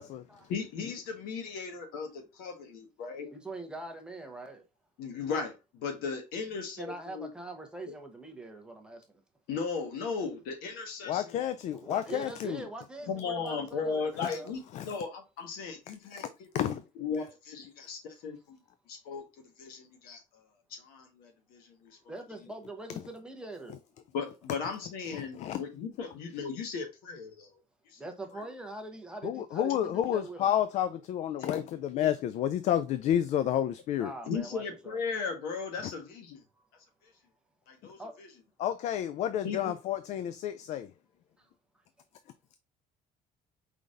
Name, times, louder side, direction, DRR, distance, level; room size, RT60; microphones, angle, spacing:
voice 1, 0.5-3.3 5.0-7.3 7.9-8.0 9.5-11.4 13.1-16.7 17.0-18.6 18.9-19.3 19.6-20.2 20.7-21.9 24.1-27.5 27.9-28.0 31.4-31.5 32.0-32.1 34.2-36.4 37.7-38.3 39.4-39.7, left 5 dB, 80° left, 1.4 m, -37 dB
voice 2, 3.3-4.6 6.8-9.2 11.7-14.5 22.1-23.8 28.0-30.5 34.0-35.0 38.0-38.1 41.4-41.5, right 2 dB, 5° right, 0.9 m, -43 dB
voice 3, 11.1-12.7 14.7-14.9 16.5-16.7 17.9-18.0 25.1-25.6 29.2-34.1 35.8-35.9 38.6-40.9, left 10 dB, 50° left, 0.4 m, -30 dB
4.7 x 3.9 x 2.6 m
cardioid pair, 140°, 15 cm